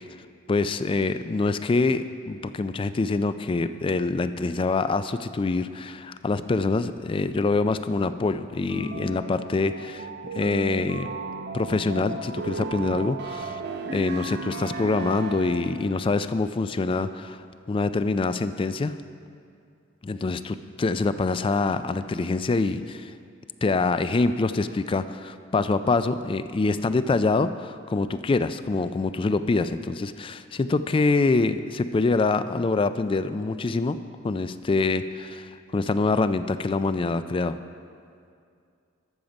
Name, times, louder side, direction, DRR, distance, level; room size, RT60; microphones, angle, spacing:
voice 1, 0.5-10.1 10.3-11.1 11.5-13.6 13.9-19.0 20.0-23.1 23.6-37.6, left 3 dB, 25° left, 12 dB, 0.3 m, -25 dB
sound 1, 8.7-16.0, right 3 dB, 55° right, 0.6 m, -35 dB
12.5 x 7.2 x 5.2 m, 2.4 s
head